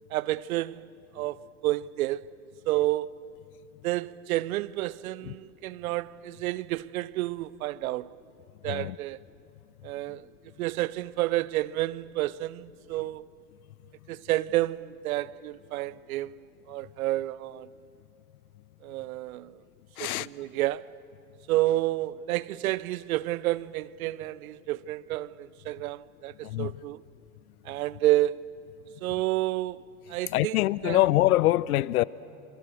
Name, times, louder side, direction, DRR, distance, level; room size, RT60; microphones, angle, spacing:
voice 1, 0.1-0.9 1.1-2.3 2.7-3.1 3.8-8.1 8.6-9.2 9.8-10.3 10.6-13.3 14.1-17.7 18.8-19.6 20.0-20.9 21.5-27.0 27.6-28.5 29.0-31.0, right 16 dB, 70° right, 0.7 m, -30 dB
voice 2, 20.0-20.3 26.4-26.7 30.3-32.0, left 15 dB, 75° left, 0.7 m, -24 dB
26.5 x 25.0 x 7.8 m
hypercardioid pair, 105°, 44 cm